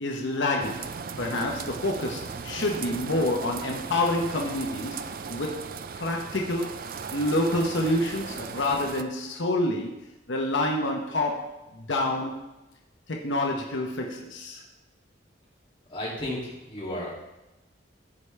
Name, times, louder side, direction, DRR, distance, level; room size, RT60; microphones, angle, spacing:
voice 1, 0.0-5.0 5.3-5.7 6.0-6.8 7.1-9.9 10.3-12.4 13.1-14.6, left 1 dB, 80° left, 0 dB, 1.0 m, -28 dB
sound 1, 0.6-9.0, right 5 dB, 50° right, 0.4 m, -37 dB
voice 2, 15.9-17.1, left 1 dB, 30° left, -6 dB, 2.5 m, -33 dB
14.0 x 4.9 x 3.3 m, 0.99 s
head